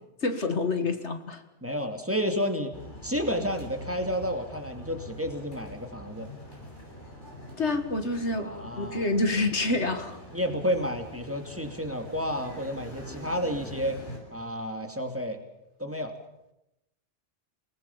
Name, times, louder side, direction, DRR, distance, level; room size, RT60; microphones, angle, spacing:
voice 1, 0.2-1.4 7.6-8.5 8.8-10.2, left 2 dB, 65° left, 8 dB, 2.1 m, -27 dB
voice 2, 1.6-2.7 3.0-6.3 8.3-9.1 10.3-14.0 14.3-15.4 15.8-16.1, equal, 10° right, 5 dB, 2.7 m, -31 dB
sound 1, 2.7-14.2, equal, 40° left, 8.2 m, -44 dB
28.5 x 19.5 x 7.3 m, 0.88 s
omnidirectional pair, 1.2 m